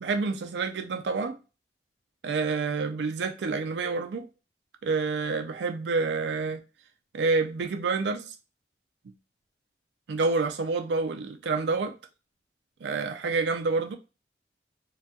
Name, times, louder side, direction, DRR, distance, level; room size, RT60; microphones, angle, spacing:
voice 1, 0.0-1.4 2.2-4.3 4.8-6.6 7.1-8.3 10.1-11.9 12.8-14.0, right 4 dB, 80° right, 0.4 m, -28 dB
4.0 x 2.3 x 2.2 m
head